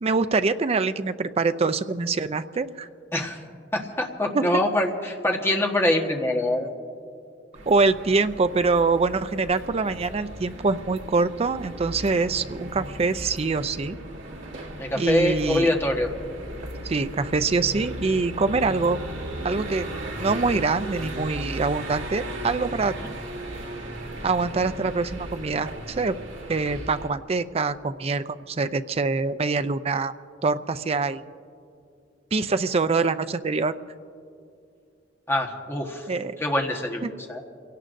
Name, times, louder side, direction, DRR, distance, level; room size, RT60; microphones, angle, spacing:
voice 1, 0.0-2.9 4.3-4.4 7.7-14.0 15.0-15.7 16.8-19.0 19.4-19.9 20.2-23.0 24.2-26.2 26.5-30.1 30.4-31.2 32.3-33.7 36.1-36.3 37.0-37.1, right 4 dB, 35° right, 11 dB, 0.5 m, -24 dB
voice 2, 3.7-6.7 12.6-12.7 14.8-16.1 23.0-23.1 35.3-36.1 36.4-37.0 37.3-37.4, left 1 dB, 15° left, 1 dB, 1.3 m, -24 dB
sound 1, 7.5-27.1, right 1 dB, 70° right, 2.0 m, -36 dB
29.5 x 17.5 x 2.6 m, 2.5 s
head